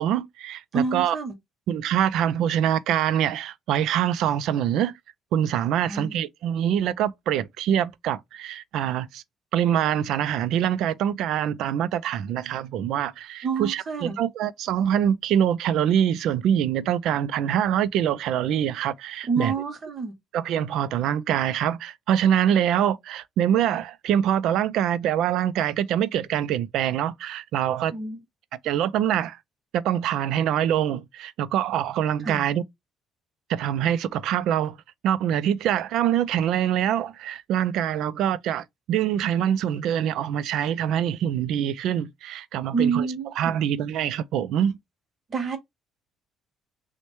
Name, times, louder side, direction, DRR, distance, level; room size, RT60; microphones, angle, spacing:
voice 1, 0.0-1.2 1.7-4.9 5.3-9.2 9.5-19.5 20.3-27.9 28.6-29.4 29.7-32.6 33.5-34.8 35.0-43.1 43.4-44.7, right 10 dB, 65° right, 0.4 m, -24 dB
voice 2, 0.7-1.3 5.9-6.2 13.4-14.2 19.2-20.1 27.9-28.2 32.2-32.5 42.7-43.6 45.3-45.6, right 5 dB, 30° right, 0.9 m, -27 dB
6.1 x 2.2 x 3.0 m
cardioid pair, 175°, 0 cm